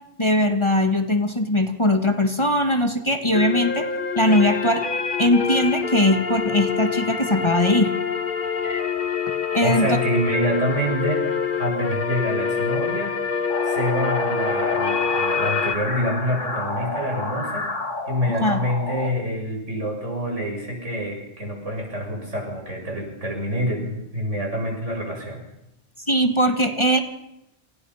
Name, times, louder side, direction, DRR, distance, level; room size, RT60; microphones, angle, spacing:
voice 1, 0.2-3.9 4.2-4.9 5.2-7.9 9.5-9.9 18.4-18.6 26.1-27.0, left 1 dB, 25° left, 6 dB, 1.9 m, -20 dB
sound 1, 3.3-15.7, left 6 dB, 45° left, 1.5 m, -26 dB
voice 2, 9.6-13.2 13.6-17.8 18.1-25.4, equal, 75° right, 1 dB, 7.6 m, -26 dB
sound 2, 13.5-19.1, left 2 dB, 85° left, 3.5 m, -29 dB
29.0 x 27.5 x 5.8 m, 0.86 s
omnidirectional pair, 1.2 m